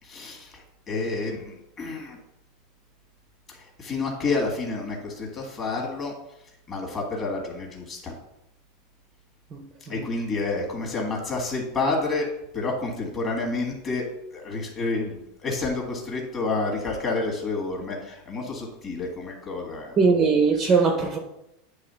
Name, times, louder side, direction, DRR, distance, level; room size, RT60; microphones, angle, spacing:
voice 1, 0.0-2.2 3.5-6.2 6.7-8.1 9.9-14.0 14.3-20.0, left 3 dB, 20° left, 0 dB, 1.7 m, -29 dB
voice 2, 20.0-21.2, right 4 dB, 20° right, 4 dB, 0.6 m, -20 dB
9.7 x 3.4 x 5.6 m, 0.83 s
supercardioid pair, 180°, 0 cm